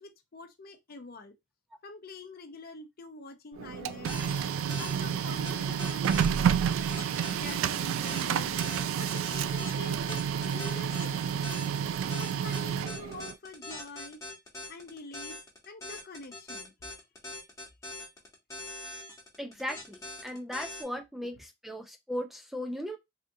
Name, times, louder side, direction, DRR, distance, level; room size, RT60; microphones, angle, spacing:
voice 1, 0.0-1.3 1.8-4.1 4.8-6.4 7.4-8.5 9.0-11.4 12.1-14.2 14.7-16.7, left 3 dB, 50° left, 0.6 m, -46 dB
Printer, 3.6-13.3, right 8 dB, 90° right, 0.3 m, -30 dB
sound 1, 4.0-20.8, left 2 dB, 15° left, 1.2 m, -42 dB
voice 2, 19.4-23.0, equal, ahead, 0.3 m, -37 dB
3.5 x 2.6 x 2.6 m
head